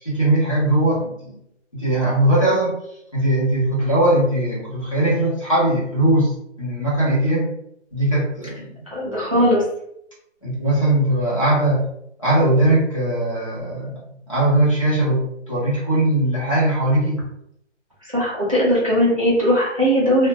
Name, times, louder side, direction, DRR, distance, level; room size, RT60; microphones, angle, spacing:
voice 1, 0.0-1.4 1.7-2.7 3.1-6.3 6.6-7.5 7.9-8.7 10.4-11.8 12.2-14.0 14.3-17.2, right 1 dB, 30° left, -9 dB, 0.7 m, -19 dB
voice 2, 8.9-9.6 18.1-20.3, equal, 30° right, -8 dB, 0.5 m, -18 dB
2.4 x 2.1 x 2.5 m, 0.77 s
hypercardioid pair, 175°, 36 cm